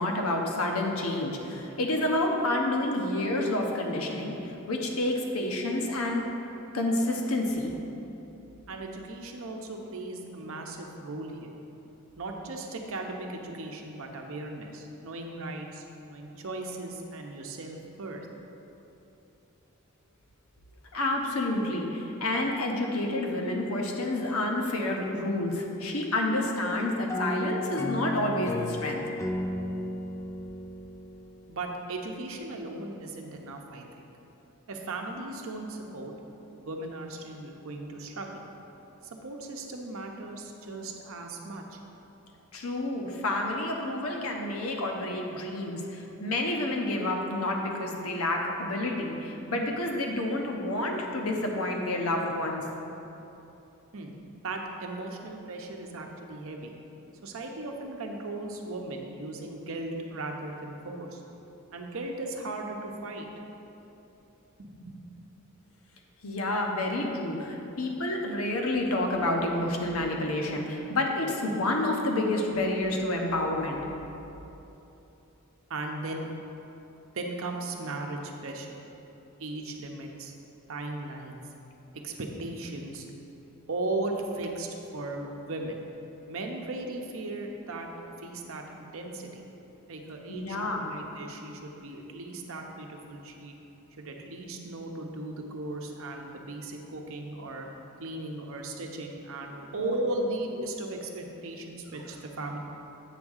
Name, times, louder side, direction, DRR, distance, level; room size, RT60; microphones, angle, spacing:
voice 1, 0.0-6.2 6.7-7.7 20.9-29.0 42.5-52.7 66.2-73.9 90.3-90.8 99.8-99.9, left 1 dB, 75° left, 1 dB, 0.9 m, -29 dB
voice 2, 8.7-11.6 12.2-18.2 31.5-34.1 34.7-36.1 36.6-38.4 39.2-41.8 53.9-54.1 54.4-56.7 57.2-61.2 61.7-63.3 64.6-65.0 75.7-76.3 77.1-78.8 79.4-80.3 80.7-81.4 82.0-83.1 83.7-85.8 86.3-89.4 89.9-93.5 94.0-97.7 98.0-102.6, right 2 dB, 70° right, 2 dB, 0.8 m, -37 dB
sound 1, 27.1-31.7, left 1 dB, 15° left, 0.3 m, -34 dB
8.1 x 3.6 x 6.4 m, 3.0 s
head